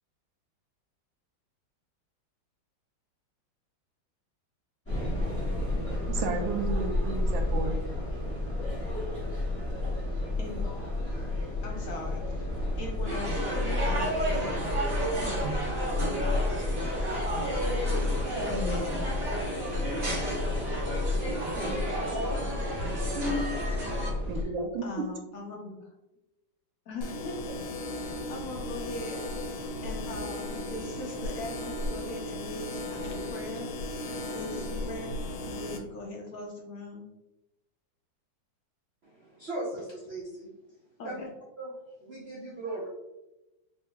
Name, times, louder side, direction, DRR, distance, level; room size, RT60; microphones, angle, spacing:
sound 1, 4.9-24.4, left 2 dB, 10° left, 0.7 m, -31 dB
voice 1, 6.1-7.8 15.4-15.6 24.1-25.1, right 4 dB, 85° right, 5 dB, 1.4 m, -33 dB
voice 2, 10.4-10.7 11.6-12.5 12.8-14.7 18.5-19.1 24.3-24.5 24.8-25.9 26.9-27.6 27.9-33.7 34.3-37.1 41.0-41.3, left 2 dB, 70° left, 0 dB, 0.8 m, -40 dB
sound 2, 13.1-24.1, right 1 dB, 40° right, 1.0 m, -32 dB
sound 3, 27.0-35.8, left 1 dB, 85° left, 1.4 m, -36 dB
voice 3, 39.0-40.5 41.0-41.3 41.6-42.9, right 2 dB, 60° right, -6 dB, 0.6 m, -38 dB
4.1 x 3.7 x 2.2 m, 0.97 s
omnidirectional pair, 2.1 m